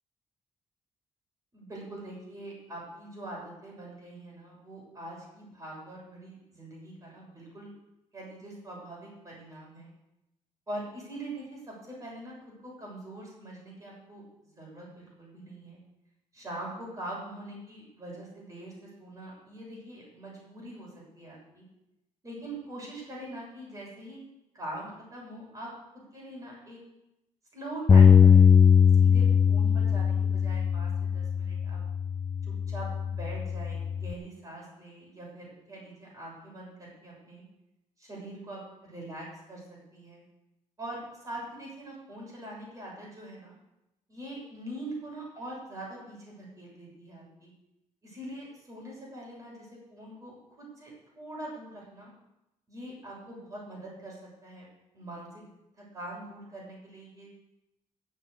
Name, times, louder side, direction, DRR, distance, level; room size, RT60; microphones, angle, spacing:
voice 1, 1.5-7.7 8.1-9.9 10.7-12.3 12.6-14.2 14.5-15.8 16.3-20.9 21.1-21.6 22.2-24.2 24.5-25.7 25.9-26.8 27.5-28.5 29.0-31.8 32.4-37.4 38.0-40.2 40.8-43.6 44.1-47.5 48.0-52.1 52.7-54.2 54.4-54.6 54.9-55.4 55.8-57.3, right 1 dB, 25° right, -3 dB, 6.9 m, -43 dB
Bass guitar, 27.9-34.1, left 7 dB, 25° left, 0.5 m, -21 dB
14.5 x 7.7 x 8.2 m, 0.90 s
cardioid pair, 150°, 12 cm